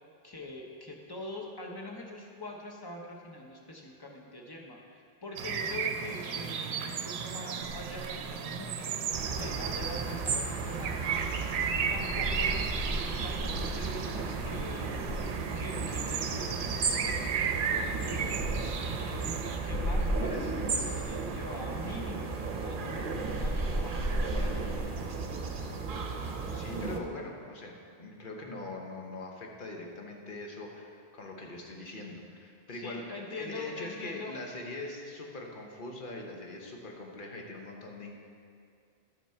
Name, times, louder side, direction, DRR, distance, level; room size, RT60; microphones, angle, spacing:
voice 1, 0.2-9.0 9.4-11.2 11.9-13.0 13.2-15.1 15.5-24.8 32.7-34.4, left 1 dB, 25° left, 0 dB, 1.0 m, -44 dB
sound 1, 5.4-19.6, right 6 dB, 85° right, 0.8 m, -35 dB
sound 2, 8.1-8.6 9.1-10.2 10.5-16.2 16.4-16.5 16.7-24.8, equal, 75° left, 1.8 m, -37 dB
sound 3, 9.1-27.0, right 4 dB, 55° right, 0.8 m, -35 dB
voice 2, 26.5-38.1, left 2 dB, 55° left, 0 dB, 1.2 m, -42 dB
11.5 x 6.0 x 4.4 m, 2.2 s
omnidirectional pair, 1.1 m